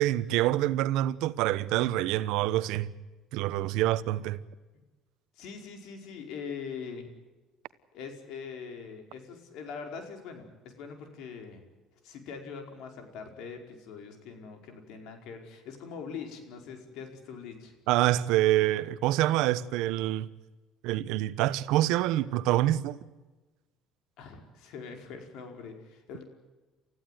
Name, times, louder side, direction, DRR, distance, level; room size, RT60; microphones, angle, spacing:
voice 1, 0.0-2.9 3.3-4.4 17.9-20.3 20.8-23.0, right 14 dB, 80° right, 1.0 m, -26 dB
voice 2, 5.4-7.1 7.9-11.6 12.0-17.7 24.2-26.2, left 6 dB, 70° left, 5.0 m, -42 dB
29.5 x 15.0 x 9.4 m
cardioid pair, 130°, 0 cm